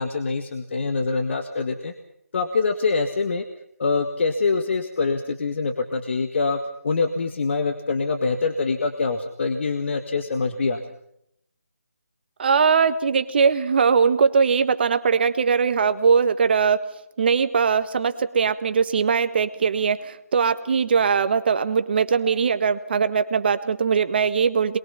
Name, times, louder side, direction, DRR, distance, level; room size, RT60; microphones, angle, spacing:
voice 1, 0.0-1.9 2.3-3.4 3.8-6.6 6.8-10.8, left 4 dB, 50° left, 7 dB, 1.9 m, -24 dB
voice 2, 12.4-16.9 17.2-24.8, right 6 dB, 40° right, 10 dB, 1.6 m, -20 dB
24.5 x 22.0 x 5.7 m, 0.74 s
figure-of-eight pair, 160°, 8 cm